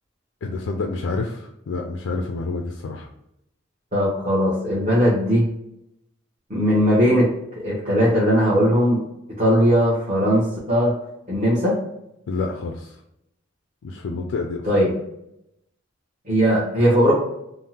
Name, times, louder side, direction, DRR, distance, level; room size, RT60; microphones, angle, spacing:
voice 1, 0.4-3.1 12.3-12.9 13.8-14.6, left 3 dB, 75° left, 2 dB, 0.3 m, -28 dB
voice 2, 3.9-5.5 6.5-9.0 9.4-10.9 11.3-11.7 14.6-14.9 16.3-17.1, equal, 35° right, -8 dB, 0.8 m, -19 dB
3.4 x 2.0 x 2.8 m, 0.81 s
head